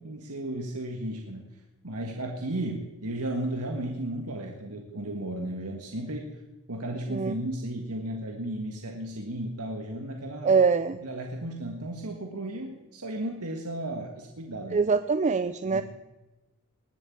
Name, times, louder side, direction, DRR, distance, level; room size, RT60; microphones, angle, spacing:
voice 1, 0.0-1.5 1.8-6.3 6.7-10.5 11.0-14.8 15.7-15.8, right 1 dB, 80° right, 2 dB, 1.7 m, -34 dB
voice 2, 10.4-11.0 14.7-15.8, right 5 dB, 30° right, 12 dB, 0.4 m, -23 dB
20.0 x 7.4 x 8.6 m, 1.1 s
head